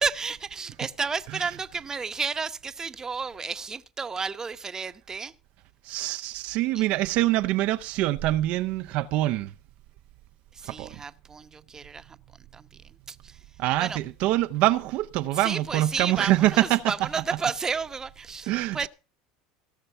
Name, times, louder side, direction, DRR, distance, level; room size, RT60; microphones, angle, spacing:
voice 1, 0.0-5.3 6.7-6.8 10.5-12.2 12.5-13.4 13.8-14.0 15.3-18.9, right 5 dB, 25° right, 0.9 m, -32 dB
voice 2, 5.8-9.5 10.6-11.0 13.6-16.8 18.5-18.9, right 16 dB, 60° right, 0.6 m, -25 dB
17.5 x 6.7 x 5.6 m
hypercardioid pair, 90°, 3 cm